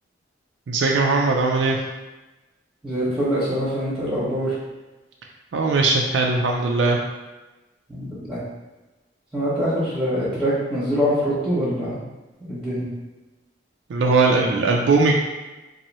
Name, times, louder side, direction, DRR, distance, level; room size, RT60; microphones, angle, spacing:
voice 1, 0.7-1.8 5.5-7.0 13.9-15.2, right 3 dB, 85° right, 0 dB, 0.4 m, -19 dB
voice 2, 2.8-4.5 7.9-8.4 9.3-12.0 12.4-12.9, equal, 5° right, -11 dB, 1.1 m, -24 dB
2.9 x 2.6 x 4.1 m, 1.1 s
head